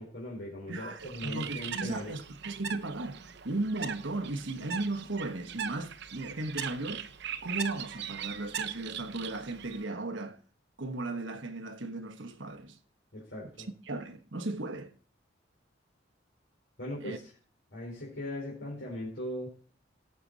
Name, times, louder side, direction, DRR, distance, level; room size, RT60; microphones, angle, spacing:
voice 1, 0.0-2.1 13.1-13.7 16.8-17.3 17.7-19.5, left 1 dB, 65° left, 4.4 m, -39 dB
voice 2, 0.7-7.1 7.4-10.4 10.8-12.8 13.9-15.0 17.0-17.2, right 2 dB, 80° right, 1.2 m, -36 dB
Bird, 1.0-9.8, right 8 dB, 60° right, 0.7 m, -40 dB
17.5 x 6.8 x 4.0 m
head